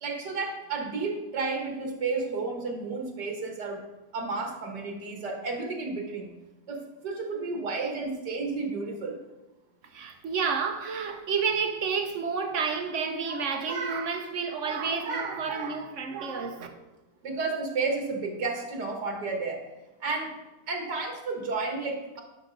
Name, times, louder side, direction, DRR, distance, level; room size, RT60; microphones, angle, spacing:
voice 1, 0.0-3.9 4.1-6.3 6.7-9.2 17.2-19.6 20.0-20.4 20.7-22.2, right 3 dB, 75° right, 1.9 m, -32 dB
voice 2, 9.9-16.7, right 5 dB, 55° right, 1.0 m, -30 dB
10.5 x 5.9 x 3.9 m
omnidirectional pair, 1.8 m